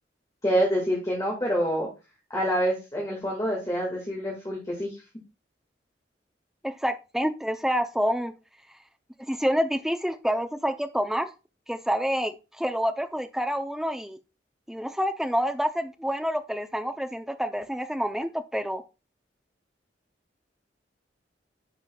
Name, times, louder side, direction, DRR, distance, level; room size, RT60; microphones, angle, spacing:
voice 1, 0.4-1.9 2.3-4.9, equal, 20° left, -3 dB, 1.8 m, -26 dB
voice 2, 6.6-8.4 9.3-11.3 11.7-14.2 14.7-18.8, equal, ahead, 7 dB, 0.5 m, -28 dB
10.0 x 5.0 x 2.3 m, 0.29 s
head